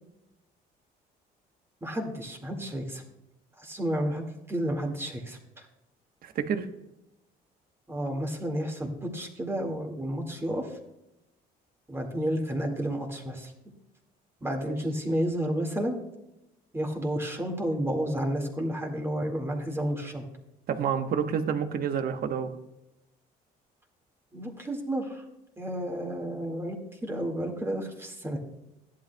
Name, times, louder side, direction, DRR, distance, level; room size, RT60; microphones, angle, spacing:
voice 1, 1.8-3.0 3.6-5.4 7.9-10.7 11.9-13.5 14.4-16.0 16.7-20.2 24.3-25.2 25.6-28.4, right 1 dB, 15° right, 1 dB, 1.9 m, -31 dB
voice 2, 6.2-6.7 14.7-14.8 20.7-22.5, right 7 dB, 60° right, 8 dB, 1.1 m, -29 dB
14.0 x 11.0 x 2.3 m, 0.92 s
cardioid pair, 110°, 17 cm